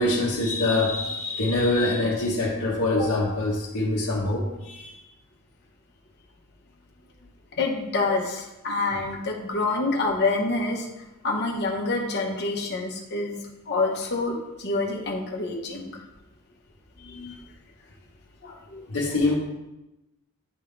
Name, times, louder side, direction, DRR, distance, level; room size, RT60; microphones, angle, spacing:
voice 1, 0.0-5.0 18.9-19.4, left 2 dB, 80° left, -5 dB, 1.0 m, -24 dB
voice 2, 7.6-10.9 11.2-13.4 13.7-15.9 17.0-17.3 18.4-18.9, left 3 dB, 50° left, -1 dB, 1.1 m, -27 dB
9.9 x 3.7 x 3.3 m, 0.95 s
head